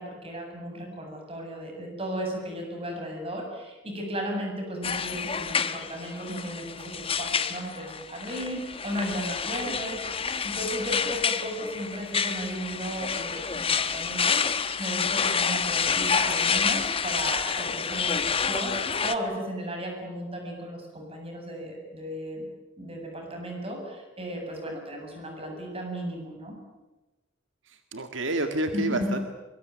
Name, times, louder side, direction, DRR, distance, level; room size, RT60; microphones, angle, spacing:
voice 1, 0.0-22.5 22.8-26.6 28.7-29.1, equal, 30° right, 2 dB, 7.9 m, -35 dB
sound 1, 4.8-19.2, left 6 dB, 30° left, 1.2 m, -28 dB
voice 2, 27.7-29.2, right 2 dB, 80° right, 6 dB, 2.1 m, -29 dB
23.5 x 23.5 x 9.3 m, 1.1 s
head